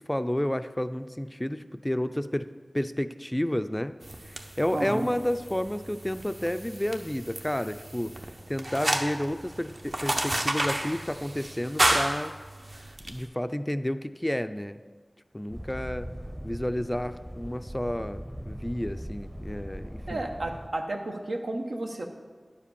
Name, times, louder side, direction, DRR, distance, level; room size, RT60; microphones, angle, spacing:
voice 1, 0.1-2.5 2.7-4.0 4.2-12.3 13.1-14.8 15.3-16.1 16.4-20.2, left 1 dB, 15° left, 11 dB, 0.4 m, -31 dB
sound 1, 4.0-13.1, right 1 dB, 45° right, 0.8 m, -31 dB
voice 2, 4.7-5.1 20.1-22.1, right 2 dB, 85° right, 3 dB, 1.0 m, -32 dB
sound 2, 15.5-20.7, equal, 10° right, 0.7 m, -40 dB
10.0 x 5.0 x 6.9 m, 1.5 s
wide cardioid pair, 50°, 0 cm